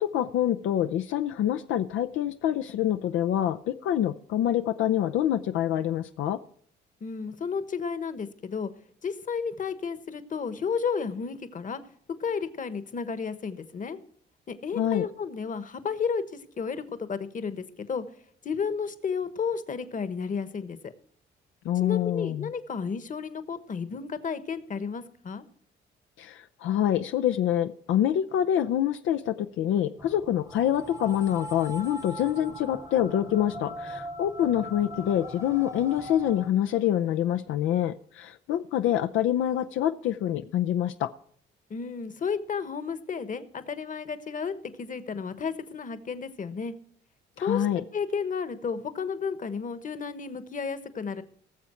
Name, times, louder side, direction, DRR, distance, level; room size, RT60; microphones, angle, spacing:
voice 1, 0.0-6.4 14.8-15.1 21.6-22.5 26.2-41.1 47.4-47.8, left 11 dB, 80° left, 9 dB, 0.5 m, -26 dB
voice 2, 7.0-8.7 9.0-11.8 12.2-14.0 14.5-18.0 18.4-20.9 21.8-25.4 41.7-46.7 47.4-47.7 47.9-51.2, left 6 dB, 40° left, 12 dB, 1.2 m, -32 dB
sound 1, 30.0-36.5, equal, 15° right, 0.9 m, -40 dB
19.0 x 7.1 x 4.4 m, 0.63 s
cardioid pair, 90°, 20 cm